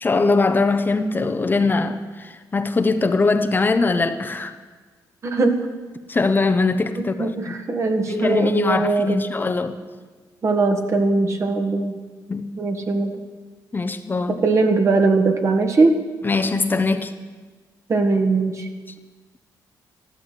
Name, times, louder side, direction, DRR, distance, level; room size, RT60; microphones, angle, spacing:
voice 1, 0.0-4.6 6.1-7.6 8.1-9.8 12.3-12.5 13.7-14.4 16.2-17.1, left 3 dB, 30° left, 0.9 m, -21 dB
voice 2, 5.2-5.6 7.2-9.2 10.4-12.0 12.6-13.1 14.3-16.0 17.9-18.7, right 3 dB, 45° right, 1.9 m, -20 dB
13.5 x 12.0 x 8.5 m
cardioid pair, 90°, 7 cm